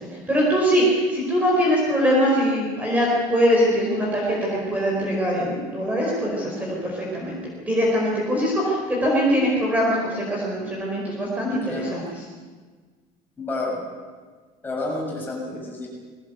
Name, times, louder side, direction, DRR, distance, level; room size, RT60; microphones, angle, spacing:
voice 1, 0.3-7.4 7.7-12.2, equal, 10° right, -3 dB, 4.7 m, -22 dB
voice 2, 11.5-12.0 13.4-13.8 14.6-15.9, left 2 dB, 15° left, -2 dB, 7.0 m, -30 dB
21.5 x 18.5 x 8.1 m, 1.5 s
cardioid pair, 165°, 15 cm